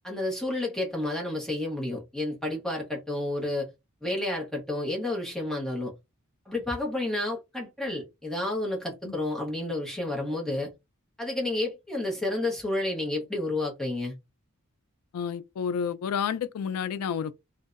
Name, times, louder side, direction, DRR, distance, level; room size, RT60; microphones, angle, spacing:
voice 1, 0.0-3.7 4.0-5.9 6.5-10.7 11.2-14.1, left 2 dB, ahead, 0.7 m, -30 dB
voice 2, 15.1-17.3, left 7 dB, 90° left, 0.3 m, -30 dB
2.6 x 2.0 x 2.3 m
head